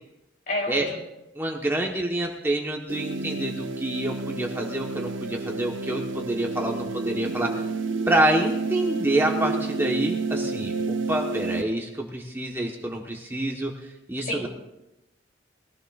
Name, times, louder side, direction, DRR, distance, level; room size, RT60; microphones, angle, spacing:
voice 1, 0.5-1.0 14.3-14.5, left 1 dB, 45° left, -1 dB, 3.6 m, -29 dB
voice 2, 1.3-7.6 8.1-14.5, right 1 dB, 10° right, 0 dB, 1.2 m, -27 dB
sound 1, 2.9-11.6, right 3 dB, 85° right, 0.7 m, -30 dB
21.5 x 15.5 x 2.5 m, 0.92 s
head